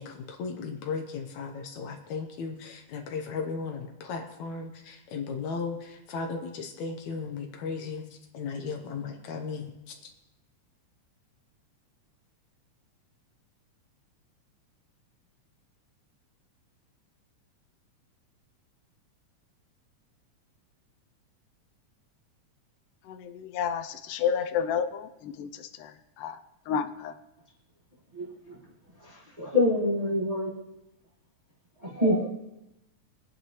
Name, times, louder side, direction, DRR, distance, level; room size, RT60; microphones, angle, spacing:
voice 1, 0.0-10.1, left 5 dB, 70° left, 4 dB, 2.3 m, -36 dB
voice 2, 23.1-25.5 25.8-25.9 26.2-26.4 26.7-27.1, left 7 dB, 85° left, 9 dB, 2.2 m, -30 dB
voice 3, 29.4-30.5 31.8-32.3, left 1 dB, 15° right, -4 dB, 1.4 m, -25 dB
23.5 x 9.4 x 3.1 m, 0.92 s
omnidirectional pair, 3.7 m